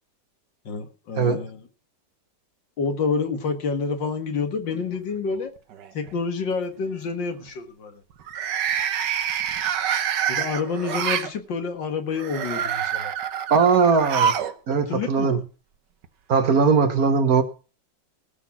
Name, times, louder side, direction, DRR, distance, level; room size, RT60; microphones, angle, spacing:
voice 1, 0.7-1.6 2.8-5.5 5.9-8.0 10.3-13.1 14.7-15.4, left 5 dB, 85° left, 2.3 m, -28 dB
sound 1, 4.7-5.3 5.7-6.1 8.2-11.3 12.1-14.6 14.8-14.9 16.0-16.1, right 8 dB, 70° right, 1.7 m, -26 dB
voice 2, 13.5-14.3 14.7-15.4 16.3-17.4, right 5 dB, 55° right, 1.6 m, -19 dB
18.0 x 6.4 x 6.0 m
omnidirectional pair, 1.9 m